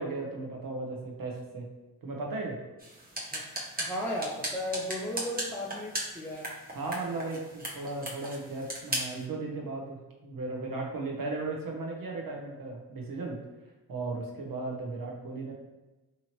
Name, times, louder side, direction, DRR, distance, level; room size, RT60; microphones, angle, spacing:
voice 1, 0.0-1.7 2.0-2.6 6.7-13.4 13.9-15.5, right 3 dB, 60° right, -1 dB, 0.9 m, -36 dB
sound 1, 2.8-9.2, right 1 dB, 25° right, 0.9 m, -38 dB
voice 2, 3.8-6.5, left 1 dB, 5° left, -4 dB, 0.5 m, -35 dB
2.9 x 2.7 x 2.9 m, 1.1 s
cardioid pair, 45°, 39 cm